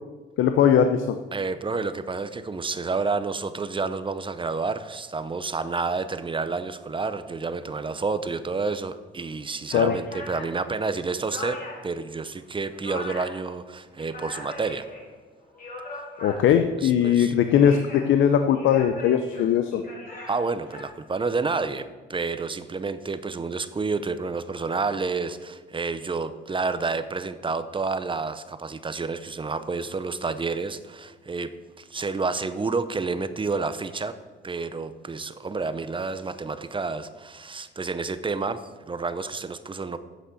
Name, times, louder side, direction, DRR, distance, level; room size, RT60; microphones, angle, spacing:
voice 1, 0.4-1.2 9.7-10.0 16.2-19.8, left 8 dB, 75° left, 8 dB, 0.7 m, -20 dB
voice 2, 1.3-14.9 16.8-17.3 20.3-31.5 31.8-34.2 34.4-40.0, right 4 dB, 25° right, 12 dB, 0.7 m, -29 dB
sound 1, 9.2-9.3 9.6-12.0 12.3-13.4 13.8-15.1 15.4-16.7 17.4-18.2 18.5-20.8, left 1 dB, 45° left, 3.6 m, -40 dB
8.3 x 8.1 x 7.7 m, 1.3 s
cardioid pair, 90°, 20 cm